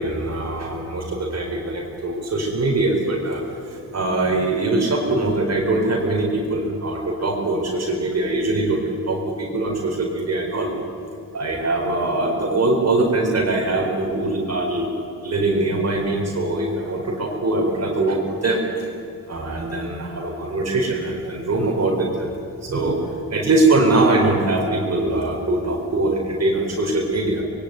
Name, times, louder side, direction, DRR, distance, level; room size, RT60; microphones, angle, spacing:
voice 1, 0.0-10.7 11.3-18.9 19.3-22.3 22.6-23.0 23.3-27.4, right 2 dB, 50° right, 0 dB, 4.6 m, -22 dB
26.0 x 22.0 x 9.4 m, 2.6 s
wide cardioid pair, 165°, 34 cm